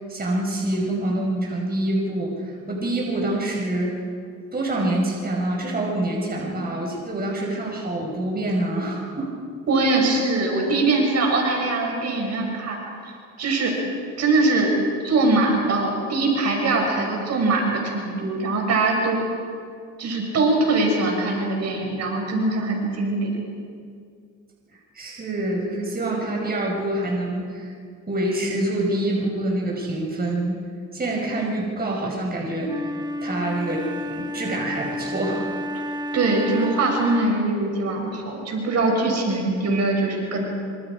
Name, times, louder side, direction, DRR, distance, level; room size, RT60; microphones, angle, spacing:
voice 1, 0.1-4.0 4.5-9.3 24.9-27.7 28.1-30.6 30.9-32.9 33.2-35.5, right 1 dB, 30° right, -2 dB, 5.5 m, -26 dB
voice 2, 9.7-12.8 13.4-13.7 14.2-14.7 15.0-19.2 20.0-23.3 36.1-40.4, right 2 dB, 60° right, 0 dB, 6.2 m, -22 dB
Wind instrument woodwind instrument, 32.6-37.5, left 1 dB, 15° right, 1.8 m, -31 dB
26.0 x 26.0 x 5.0 m, 2.2 s
cardioid pair, 90°, 30 cm